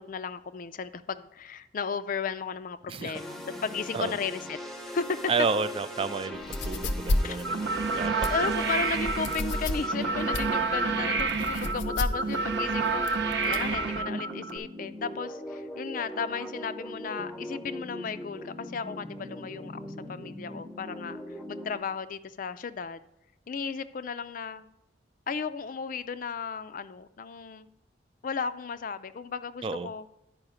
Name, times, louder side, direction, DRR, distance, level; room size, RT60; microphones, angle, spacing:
voice 1, 0.0-4.6 4.9-5.2 7.2-7.4 8.3-23.1 23.5-24.7 25.3-27.7 28.2-30.2, left 5 dB, 45° left, 12 dB, 0.4 m, -35 dB
voice 2, 2.9-3.2 3.9-4.1 5.3-7.6 7.9-8.5 29.6-29.9, right 4 dB, 30° right, 12 dB, 0.3 m, -31 dB
sound 1, 3.1-21.8, left 1 dB, ahead, 0.6 m, -40 dB
sound 2, 6.3-13.7, left 1 dB, 85° left, 0.7 m, -32 dB
sound 3, 7.4-14.6, right 4 dB, 70° right, 0.8 m, -29 dB
10.5 x 4.8 x 4.9 m, 0.84 s
head